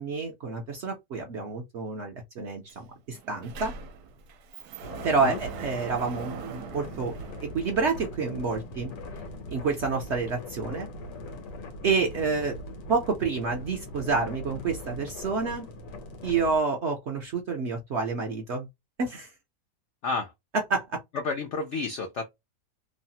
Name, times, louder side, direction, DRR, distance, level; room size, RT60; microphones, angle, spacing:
voice 1, 0.0-3.7 5.0-7.1 7.4-8.9 9.5-10.9 11.8-12.6 12.9-15.7 16.2-18.7 19.0-19.3 20.7-21.0, right 4 dB, 60° right, 0.7 m, -28 dB
Sliding door, 2.7-2.8 3.1-8.1, right 7 dB, 75° right, 1.1 m, -42 dB
sound 1, 4.8-16.6, left 1 dB, 90° left, 1.4 m, -41 dB
voice 2, 21.1-22.3, left 4 dB, 70° left, 0.6 m, -30 dB
3.1 x 2.0 x 2.7 m
omnidirectional pair, 1.8 m